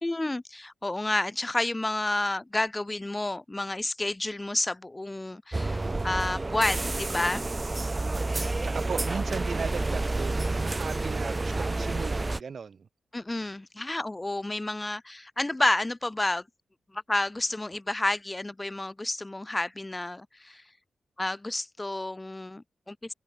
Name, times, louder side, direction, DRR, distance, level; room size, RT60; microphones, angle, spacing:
voice 1, 0.0-7.4 13.1-16.4 16.9-20.6 21.2-23.1, left 2 dB, 15° left, 2.8 m, -30 dB
sound 1, 5.5-12.4, right 2 dB, 20° right, 5.7 m, -29 dB
voice 2, 8.4-12.9, right 6 dB, 55° right, 6.0 m, -37 dB
wide cardioid pair, 125°, 0 cm